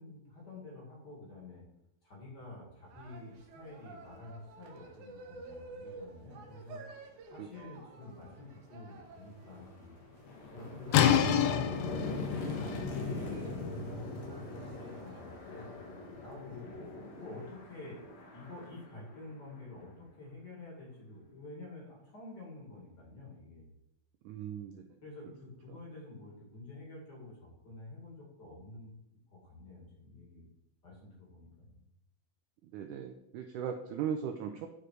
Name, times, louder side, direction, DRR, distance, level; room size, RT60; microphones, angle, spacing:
voice 1, 0.0-1.6 2.0-6.8 7.3-9.9 10.5-13.9 14.6-16.8 17.2-18.0 18.3-23.7 24.8-28.9 29.3-30.5 30.8-31.9, left 2 dB, 30° left, -3 dB, 2.7 m, -49 dB
sound 1, 2.9-18.8, right 3 dB, 70° right, 2.2 m, -53 dB
sound 2, 8.5-8.6 9.0-19.8, left 3 dB, 60° left, 2.2 m, -41 dB
sound 3, 10.9-16.6, left 9 dB, 80° left, 2.0 m, -31 dB
voice 2, 24.2-25.0 25.7-25.8 32.6-34.7, right 8 dB, 90° right, 6 dB, 1.7 m, -39 dB
9.9 x 4.9 x 4.7 m, 0.80 s
omnidirectional pair, 4.2 m